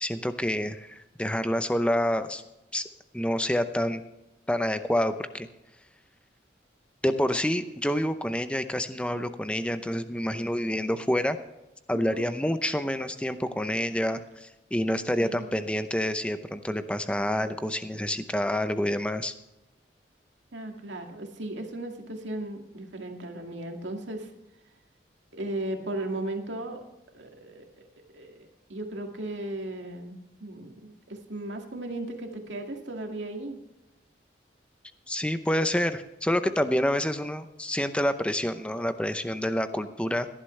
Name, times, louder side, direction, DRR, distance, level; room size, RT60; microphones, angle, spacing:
voice 1, 0.0-2.4 2.7-2.8 3.1-4.0 4.5-5.5 7.0-11.4 11.9-19.3 35.1-40.3, equal, 5° left, 10 dB, 0.7 m, -28 dB
voice 2, 11.9-12.3 15.2-15.5 20.5-24.3 25.3-26.8 27.1-27.7 28.1-33.6, right 1 dB, 85° right, 3 dB, 2.2 m, -36 dB
18.0 x 11.5 x 3.3 m, 0.93 s
head